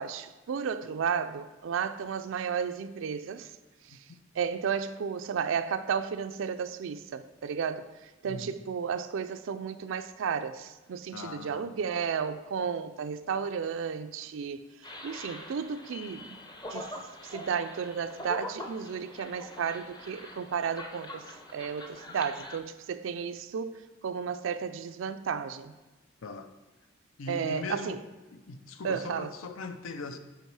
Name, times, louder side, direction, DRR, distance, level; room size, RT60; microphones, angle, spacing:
voice 1, 0.0-3.5 3.9-4.0 4.3-14.6 15.0-16.4 16.7-16.9 17.2-21.2 21.5-25.7 27.3-28.0 28.8-29.3, right 6 dB, 70° right, 0.4 m, -33 dB
voice 2, 11.1-11.8 26.2-26.5 27.2-28.0 28.3-30.2, left 3 dB, 85° left, 0.6 m, -40 dB
sound 1, 14.8-22.6, left 1 dB, 20° left, 0.6 m, -44 dB
8.1 x 4.0 x 4.7 m
head